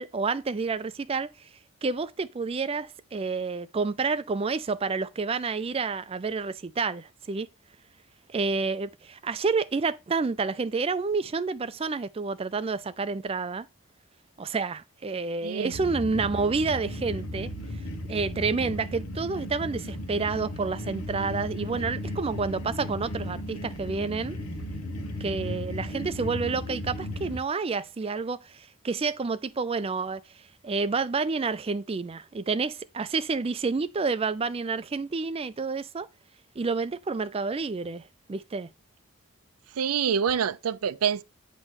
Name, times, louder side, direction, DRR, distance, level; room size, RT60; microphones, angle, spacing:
voice 1, 0.0-1.3 1.8-7.5 8.3-13.7 14.4-17.5 18.1-24.4 25.2-30.2 30.6-36.1 36.6-38.0 38.3-38.7, right 4 dB, 25° right, 0.4 m, -29 dB
voice 2, 15.4-15.7 39.8-41.2, right 7 dB, 85° right, 0.5 m, -26 dB
sound 1, 15.7-27.4, equal, 80° left, 1.4 m, -35 dB
8.8 x 3.1 x 6.2 m
head